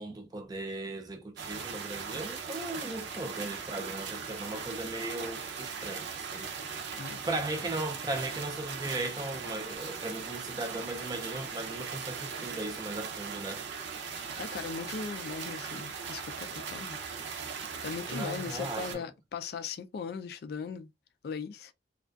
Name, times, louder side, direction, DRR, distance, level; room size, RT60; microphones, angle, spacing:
voice 1, 0.0-6.8 7.3-13.6 18.1-19.0, right 2 dB, 20° right, 0.4 m, -37 dB
sound 1, 1.4-18.9, right 6 dB, 75° right, 0.5 m, -39 dB
voice 2, 14.4-17.1 17.5-20.9 21.2-21.7, left 5 dB, 60° left, 0.3 m, -39 dB
2.4 x 2.3 x 2.3 m
head